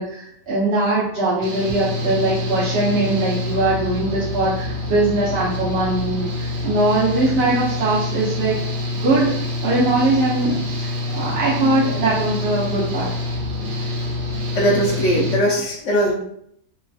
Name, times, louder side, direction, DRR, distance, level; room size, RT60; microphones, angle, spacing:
voice 1, 0.0-8.6 9.0-9.3 9.6-13.1, right 2 dB, 55° right, -8 dB, 0.8 m, -21 dB
Engine / Mechanical fan, 1.4-15.3, left 2 dB, 85° right, 0.4 m, -26 dB
voice 2, 14.5-16.1, equal, 65° left, -1 dB, 0.8 m, -20 dB
3.1 x 2.3 x 2.3 m, 0.72 s
omnidirectional pair, 1.5 m